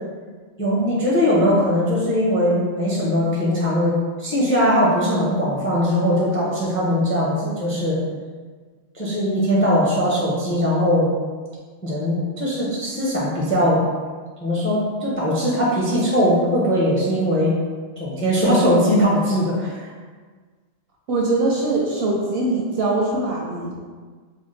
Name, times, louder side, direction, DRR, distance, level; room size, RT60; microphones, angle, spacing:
voice 1, 0.6-8.0 8.9-11.1 11.8-13.8 14.4-17.6 18.0-19.9, equal, 15° left, -6 dB, 0.4 m, -20 dB
voice 2, 21.1-23.7, right 2 dB, 65° right, -2 dB, 0.7 m, -22 dB
4.2 x 2.1 x 3.1 m, 1.5 s
omnidirectional pair, 1.3 m